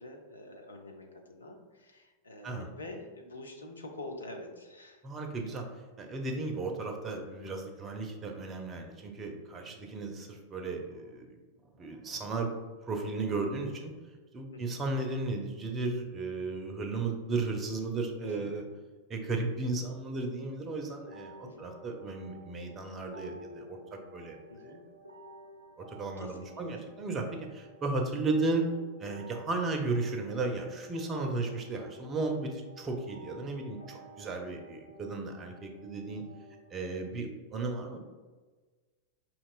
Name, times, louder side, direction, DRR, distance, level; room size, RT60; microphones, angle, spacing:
voice 1, 0.0-5.0 9.7-9.9 14.5-14.8 18.2-18.5 21.4-21.7 24.5-24.8 26.2-26.8, left 1 dB, 75° left, 3 dB, 0.6 m, -46 dB
voice 2, 5.0-5.7 6.0-11.4 11.7-12.5 12.8-13.9 14.3-18.6 19.1-24.4 25.9-28.6 29.0-36.2 36.7-38.0, right 3 dB, 25° right, 3 dB, 0.6 m, -35 dB
sound 1, 21.0-37.0, equal, 85° right, 0.5 m, -52 dB
5.3 x 2.9 x 2.4 m, 1.3 s
figure-of-eight pair, 90°, 0 cm